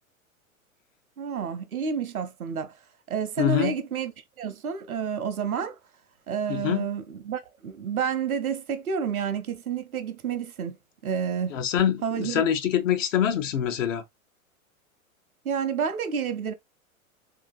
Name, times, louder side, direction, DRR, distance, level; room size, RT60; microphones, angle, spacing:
voice 1, 1.2-2.7 3.1-4.1 4.4-5.8 6.3-10.8 11.0-11.6 12.0-12.4 15.4-16.5, right 7 dB, 85° right, 0.7 m, -29 dB
voice 2, 3.4-3.8 6.5-6.9 11.5-14.0, left 9 dB, 65° left, 0.8 m, -25 dB
3.7 x 2.8 x 2.5 m
figure-of-eight pair, 100°, 42 cm